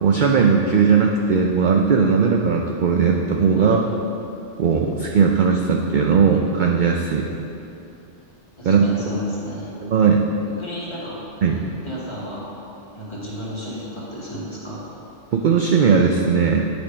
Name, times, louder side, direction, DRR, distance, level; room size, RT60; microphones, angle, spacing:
voice 1, 0.0-3.8 4.6-7.3 8.6-8.9 9.8-10.2 11.4-11.6 15.3-16.6, right 6 dB, 60° right, 1 dB, 0.5 m, -18 dB
voice 2, 8.6-9.8 10.6-11.2 11.5-12.6 12.9-14.9, equal, 25° left, -8 dB, 1.7 m, -33 dB
9.8 x 3.5 x 5.1 m, 2.8 s
omnidirectional pair, 1.2 m